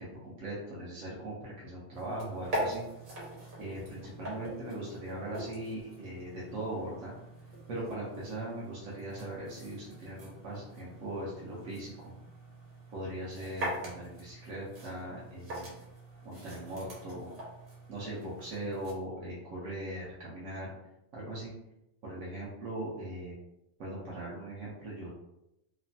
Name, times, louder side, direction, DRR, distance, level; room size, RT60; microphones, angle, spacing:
voice 1, 0.0-2.8 3.6-7.1 7.7-12.1 12.9-15.8 16.2-17.3 17.9-20.7 21.1-21.5 22.0-23.3 23.8-25.1, right 1 dB, 80° right, -6 dB, 1.1 m, -40 dB
sound 1, 1.9-18.9, right 1 dB, 50° right, 1.1 m, -43 dB
3.0 x 2.1 x 2.6 m, 0.87 s
omnidirectional pair, 1.4 m